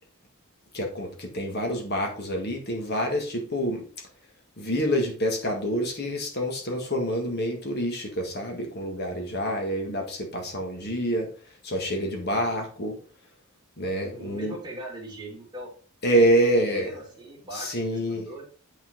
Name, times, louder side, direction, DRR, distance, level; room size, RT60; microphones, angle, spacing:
voice 1, 0.7-3.8 4.6-11.3 11.6-12.9 13.8-14.5 16.0-16.9 17.5-18.3, equal, 50° left, 2 dB, 1.6 m, -27 dB
voice 2, 14.1-15.7 16.4-16.5 16.7-18.4, right 1 dB, 20° right, -2 dB, 2.4 m, -40 dB
8.9 x 4.3 x 3.8 m, 0.39 s
head